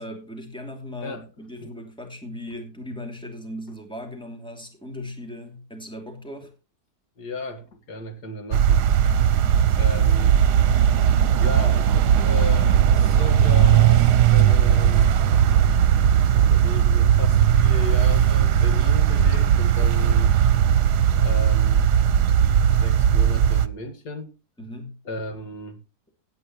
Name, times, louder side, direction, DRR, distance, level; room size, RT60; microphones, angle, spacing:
voice 1, 0.0-6.5 9.8-9.9 24.6-25.0, left 1 dB, 5° left, 2.8 m, -38 dB
voice 2, 7.2-8.9 9.8-10.4 11.0-11.1 11.4-15.1 16.5-20.4 21.2-21.9 22.7-24.3 25.0-25.8, left 2 dB, 80° left, 2.4 m, -35 dB
sound 1, 8.5-23.7, right 9 dB, 85° right, 1.4 m, -18 dB
16.5 x 9.4 x 3.1 m
omnidirectional pair, 1.7 m